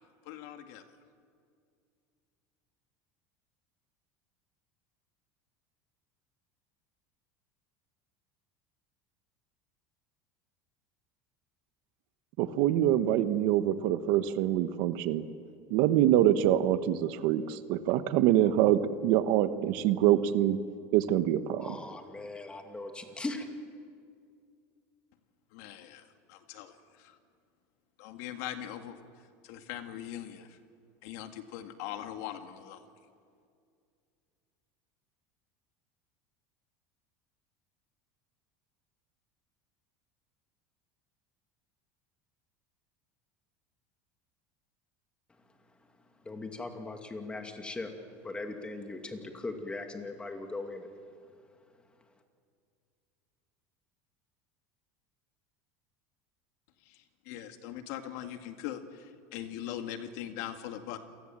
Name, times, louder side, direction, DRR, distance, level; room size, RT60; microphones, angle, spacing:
voice 1, 0.3-0.8 25.5-27.2 28.0-29.0 29.4-30.6 31.0-32.9 56.9-61.0, left 11 dB, 75° left, 7 dB, 2.0 m, -41 dB
voice 2, 12.4-15.2 15.7-20.6 20.9-21.8, right 12 dB, 65° right, 11 dB, 1.2 m, -25 dB
voice 3, 21.6-23.5 46.2-47.9 48.2-50.9, left 2 dB, 10° left, 4 dB, 2.4 m, -39 dB
28.0 x 19.5 x 7.5 m, 2.3 s
supercardioid pair, 140°, 8 cm